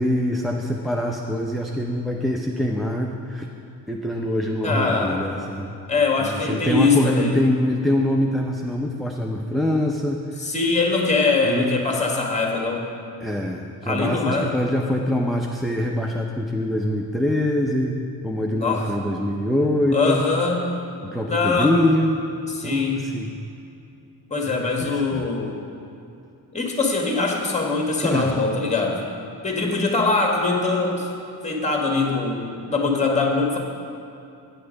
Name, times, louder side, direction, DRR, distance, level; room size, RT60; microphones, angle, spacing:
voice 1, 0.0-3.5 3.9-5.7 6.2-10.2 11.4-11.9 13.2-18.0 18.2-20.2 21.1-22.2 22.6-23.3 24.4-25.2 28.0-28.3, left 1 dB, ahead, 0 dB, 0.5 m, -24 dB
voice 2, 4.6-5.2 5.9-7.4 10.4-12.9 13.8-14.5 18.5-18.9 19.9-20.6 21.3-21.7 22.5-23.0 24.3-25.6 26.5-29.0 29.4-31.1 31.4-33.6, left 3 dB, 15° left, 0 dB, 1.5 m, -22 dB
9.6 x 6.7 x 5.1 m, 2.7 s
cardioid pair, 90°, 41 cm